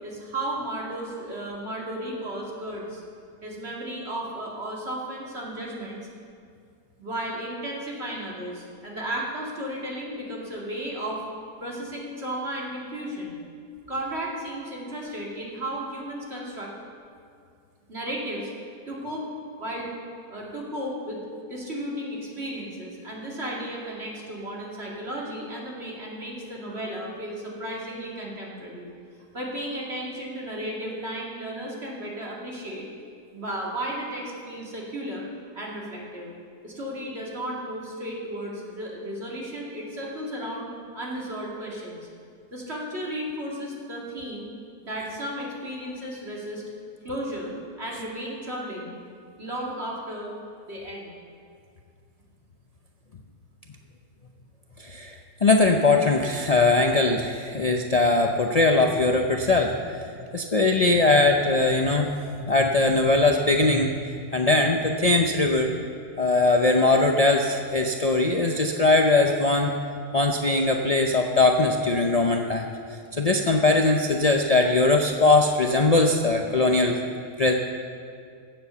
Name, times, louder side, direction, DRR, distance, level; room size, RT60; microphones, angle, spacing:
voice 1, 0.0-3.0 3.4-6.1 7.0-11.2 11.6-13.4 13.9-16.7 17.9-18.5 18.9-19.3 19.6-20.0 20.3-21.2 21.5-28.9 29.3-32.9 33.3-35.2 35.5-36.3 36.6-40.7 40.9-42.1 42.5-44.5 44.8-46.6 47.0-47.5 47.8-48.9 49.4-50.3 50.7-51.2, right 1 dB, 40° right, -4 dB, 2.8 m, -34 dB
voice 2, 54.8-55.2 55.4-60.0 60.3-62.1 62.4-65.7 66.2-69.7 70.1-72.7 73.1-77.0 77.4-77.5, left 2 dB, 70° left, 2 dB, 0.3 m, -21 dB
15.5 x 7.8 x 6.9 m, 2.3 s
omnidirectional pair, 1.7 m